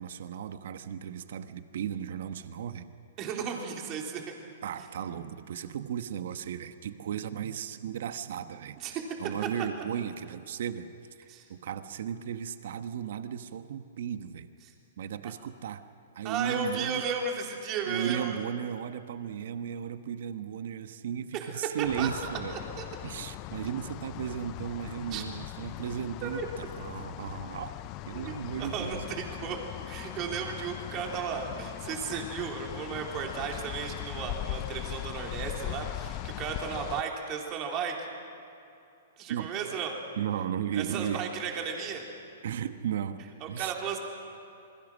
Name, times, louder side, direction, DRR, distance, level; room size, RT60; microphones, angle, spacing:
voice 1, 0.0-2.9 4.6-10.9 11.5-14.5 15.0-15.9 16.1-17.0 17.9-22.6 23.0-27.8 28.1-29.1 39.3-39.5 40.2-41.4 42.4-43.7, right 9 dB, 65° right, 10 dB, 1.1 m, -35 dB
voice 2, 3.2-4.2 8.8-9.0 11.3-11.4 16.2-18.4 21.3-21.5 22.0-22.1 22.5-22.8 25.1-25.2 26.2-26.5 28.1-28.3 28.6-29.6 29.9-38.0 39.2-39.9 40.7-42.1 43.4-44.0, right 6 dB, 35° right, 1 dB, 3.6 m, -34 dB
sound 1, 21.8-37.0, left 16 dB, 35° left, 0.6 m, -40 dB
28.0 x 21.5 x 6.3 m, 2.7 s
hypercardioid pair, 135°, 0 cm